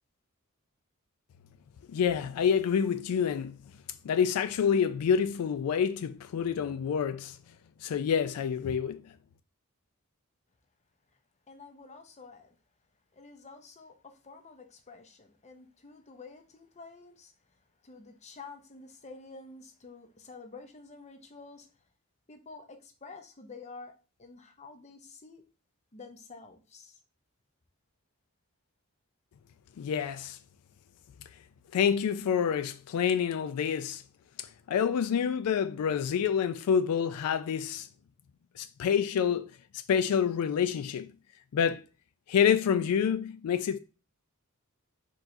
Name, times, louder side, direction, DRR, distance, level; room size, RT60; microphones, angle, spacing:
voice 1, 1.9-3.6 4.0-7.4 7.8-9.0 29.8-30.4 31.7-34.0 34.4-37.9 38.6-39.5 39.9-41.1 41.5-41.8 42.3-43.8, left 7 dB, 85° left, 0.3 m, -27 dB
voice 2, 11.5-12.6 13.1-21.7 22.3-23.9 24.2-25.4 25.9-27.0, left 4 dB, 30° left, 0.7 m, -49 dB
4.5 x 4.4 x 2.6 m
head